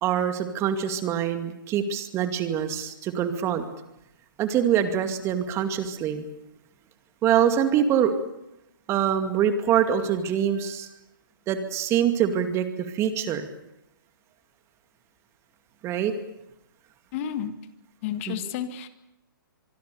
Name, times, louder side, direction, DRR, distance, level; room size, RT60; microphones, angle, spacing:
voice 1, 0.0-3.6 4.4-6.2 7.2-8.1 8.9-10.9 11.5-13.5 15.8-16.1 18.3-18.4, right 9 dB, 25° right, 8 dB, 2.4 m, -24 dB
voice 2, 17.1-17.5 18.0-18.9, left 9 dB, 40° left, 10 dB, 1.8 m, -31 dB
25.0 x 22.5 x 6.9 m, 0.86 s
hypercardioid pair, 135°, 11 cm